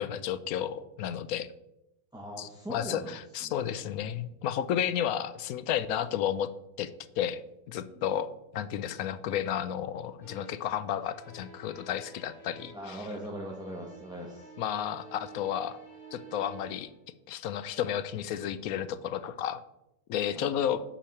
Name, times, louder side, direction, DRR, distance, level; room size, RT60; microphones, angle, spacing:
voice 1, 0.0-1.5 2.4-6.5 6.8-6.9 7.2-7.4 7.7-13.0 14.6-15.8 16.1-16.9 17.3-19.6 20.1-20.8, left 10 dB, 70° left, 14 dB, 1.0 m, -32 dB
voice 2, 2.1-3.6 7.8-8.0 12.7-14.5 20.3-20.7, right 1 dB, 5° right, -2 dB, 0.9 m, -41 dB
sound 1, 10.2-10.8 11.0-13.0 13.2-17.0 17.5-17.9, right 4 dB, 45° left, 3.0 m, -51 dB
8.5 x 5.6 x 6.5 m, 0.88 s
omnidirectional pair, 1.8 m